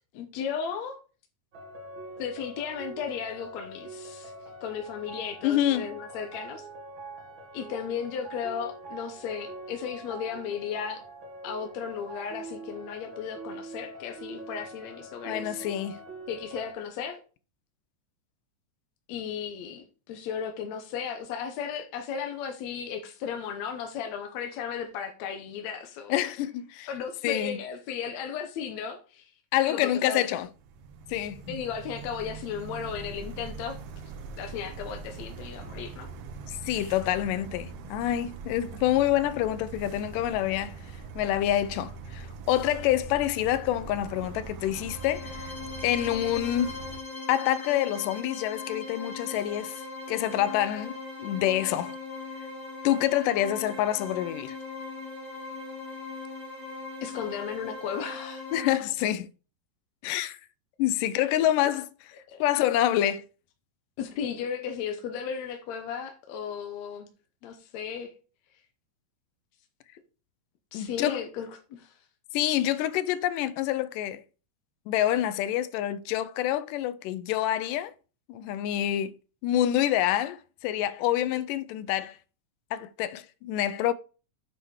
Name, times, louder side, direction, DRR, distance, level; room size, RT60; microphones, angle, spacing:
voice 1, 0.1-1.0 2.2-4.3 4.6-6.7 7.5-11.0 11.4-15.6 16.3-17.2 19.1-26.2 26.9-29.3 29.6-30.2 31.5-33.8 34.4-36.1 57.0-58.5 62.3-62.4 64.0-67.1 67.4-68.1 70.7-71.9, left 7 dB, 70° left, 1.9 m, -35 dB
sound 1, 1.5-16.7, right 2 dB, 50° right, 1.8 m, -43 dB
voice 2, 5.4-6.0 15.3-16.0 26.1-26.9 27.2-27.6 29.5-30.5 31.1-31.6 36.5-40.8 41.2-45.5 45.8-46.8 47.3-49.8 50.1-52.0 52.8-54.6 58.5-59.3 60.0-60.4 60.8-61.9 62.4-63.2 70.7-71.2 72.3-74.2 74.9-77.9 78.3-79.1 79.4-82.2 82.7-83.9, left 12 dB, 85° left, 2.2 m, -27 dB
sound 2, 30.4-47.0, right 4 dB, 70° right, 1.5 m, -42 dB
sound 3, 44.6-58.7, left 3 dB, 35° left, 2.5 m, -39 dB
7.8 x 4.8 x 4.7 m
omnidirectional pair, 3.7 m